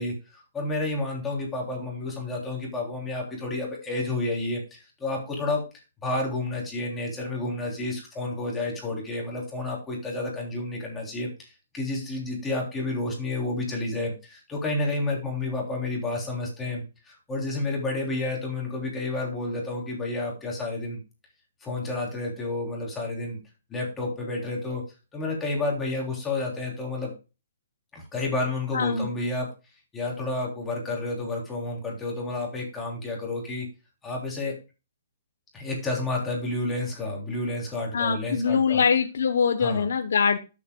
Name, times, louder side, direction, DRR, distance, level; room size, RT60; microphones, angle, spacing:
voice 1, 0.0-5.6 6.0-21.0 21.6-23.4 23.7-24.8 25.1-27.1 27.9-29.5 29.9-33.7 34.0-34.6 35.5-38.8 39.6-39.9, left 2 dB, 10° left, -2 dB, 3.3 m, -30 dB
voice 2, 28.7-29.1 37.9-40.4, left 6 dB, 70° left, 7 dB, 0.9 m, -23 dB
13.0 x 7.4 x 2.3 m, 0.29 s
hypercardioid pair, 160°, 0 cm